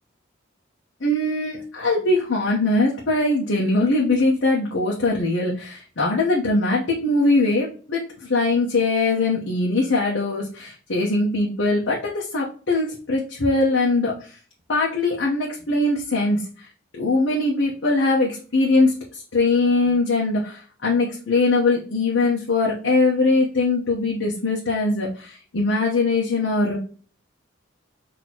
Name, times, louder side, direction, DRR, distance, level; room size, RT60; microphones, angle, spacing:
voice 1, 1.0-14.3 14.7-16.7 16.9-26.8, left 2 dB, 70° left, -4 dB, 1.0 m, -21 dB
6.1 x 3.0 x 2.9 m, 0.39 s
head